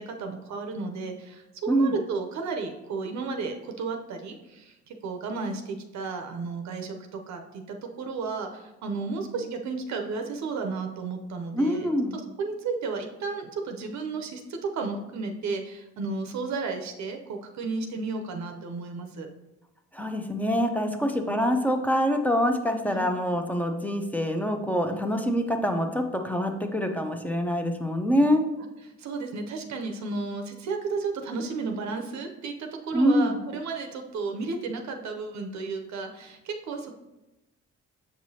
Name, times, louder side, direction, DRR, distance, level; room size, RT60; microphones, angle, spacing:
voice 1, 0.0-11.9 12.4-19.3 20.8-21.0 22.8-23.1 24.9-25.0 29.0-36.9, right 4 dB, 65° right, 4 dB, 0.7 m, -33 dB
voice 2, 11.5-12.2 19.9-28.4 32.9-33.4, equal, 5° left, 5 dB, 0.6 m, -25 dB
7.2 x 4.8 x 2.7 m, 0.99 s
cardioid pair, 90°, 30 cm